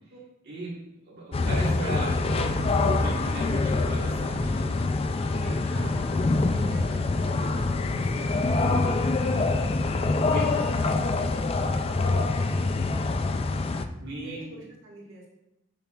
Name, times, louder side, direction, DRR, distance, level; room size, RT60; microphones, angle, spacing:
voice 1, 0.5-0.8 1.0-5.9 10.3-10.5 12.0-12.2 14.0-14.4, right 2 dB, 55° right, -7 dB, 1.5 m, -36 dB
sound 1, 1.3-13.8, left 3 dB, 30° left, 0.3 m, -25 dB
voice 2, 5.2-8.6 8.8-9.9 10.3-11.9 12.4-13.1 14.2-15.3, right 1 dB, 70° right, -4 dB, 1.8 m, -47 dB
7.0 x 5.8 x 2.4 m, 0.89 s
head